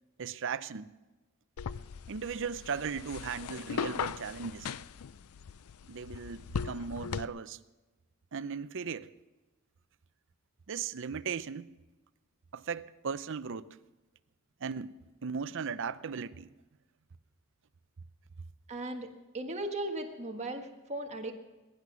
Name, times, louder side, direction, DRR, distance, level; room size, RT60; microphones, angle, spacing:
voice 1, 0.2-0.9 2.1-4.7 5.9-7.6 8.3-9.1 10.7-11.7 12.5-13.7 14.6-16.5, right 6 dB, 60° right, 0.6 m, -37 dB
sound 1, 1.6-7.2, left 6 dB, 80° left, 0.5 m, -39 dB
voice 2, 18.7-19.1 19.3-21.3, right 1 dB, 30° right, 1.6 m, -37 dB
21.5 x 11.0 x 6.1 m
head